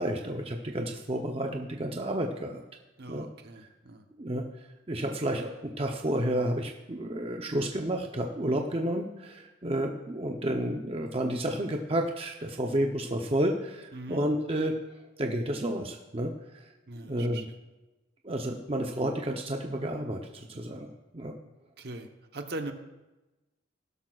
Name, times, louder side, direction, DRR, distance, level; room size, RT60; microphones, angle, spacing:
voice 1, 0.0-2.6 3.1-3.3 4.2-4.4 4.9-14.7 15.2-16.6 16.9-17.4 18.2-21.3, right 1 dB, 30° right, 2 dB, 0.7 m, -31 dB
voice 2, 3.0-4.1 13.9-14.2 16.9-17.4 21.8-22.7, right 2 dB, 55° right, 5 dB, 1.0 m, -40 dB
16.5 x 12.5 x 2.4 m, 1.1 s
head